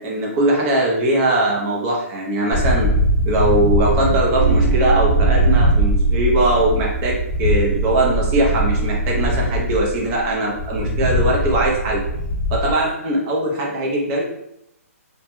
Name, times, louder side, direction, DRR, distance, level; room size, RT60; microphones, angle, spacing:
voice 1, 0.0-2.9 3.3-12.0 12.5-14.2, right 1 dB, 20° right, -2 dB, 0.5 m, -20 dB
sound 1, 2.5-12.7, equal, 25° left, 0.6 m, -21 dB
sound 2, 4.4-9.5, right 4 dB, 90° right, 0.8 m, -22 dB
2.2 x 2.1 x 2.9 m, 0.81 s
hypercardioid pair, 160°, 8 cm